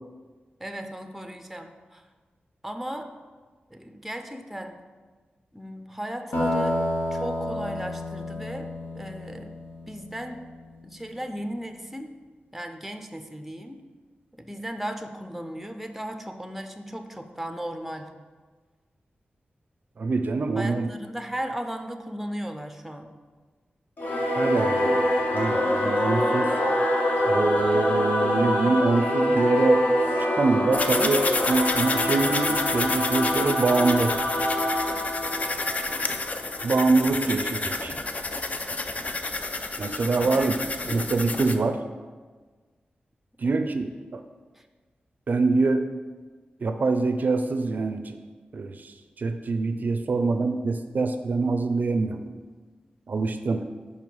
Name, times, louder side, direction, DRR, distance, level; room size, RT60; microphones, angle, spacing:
voice 1, 0.6-2.0 2.6-3.1 3.7-4.8 5.5-6.8 7.1-9.6 9.9-10.4 10.8-12.1 12.5-13.8 14.4-18.1 20.5-23.1 35.4-35.7 40.2-40.6 43.4-43.6, right 1 dB, 5° right, 6 dB, 0.5 m, -36 dB
sound 1, 6.3-10.6, left 1 dB, 90° left, 1.5 m, -30 dB
voice 2, 20.0-20.9 24.3-26.6 27.2-29.8 30.2-34.2 36.6-38.0 39.8-40.6 40.9-41.8 43.4-44.2 45.3-45.9 46.6-48.2 48.5-52.2 53.1-53.7, right 3 dB, 55° right, 8 dB, 0.4 m, -25 dB
Singing / Musical instrument, 24.0-36.9, left 1 dB, 60° left, 1.2 m, -25 dB
sound 2, 30.7-41.6, left 3 dB, 45° left, 0.5 m, -30 dB
5.2 x 4.7 x 5.3 m, 1.4 s
wide cardioid pair, 95°, 3 cm